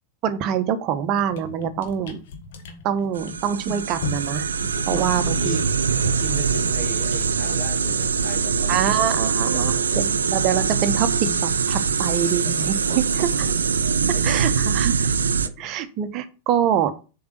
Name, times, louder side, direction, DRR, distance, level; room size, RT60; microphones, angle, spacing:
voice 1, 0.2-2.2 2.8-4.5 4.9-5.6 8.7-13.5 14.2-15.1 15.6-16.9, right 9 dB, 40° right, 11 dB, 1.0 m, -25 dB
sound 1, 0.5-0.7 1.1-9.9 10.2-16.1, left 4 dB, 55° left, 1.4 m, -40 dB
sound 2, 3.2-15.5, right 6 dB, 70° right, 0.5 m, -23 dB
voice 2, 4.7-5.7 6.2-8.9 9.1-9.2 9.5-10.0 12.3-12.6 13.7-14.6 15.4-15.8, left 3 dB, 35° left, 6 dB, 1.8 m, -37 dB
7.0 x 4.9 x 6.5 m, 0.34 s
figure-of-eight pair, 90°, 0 cm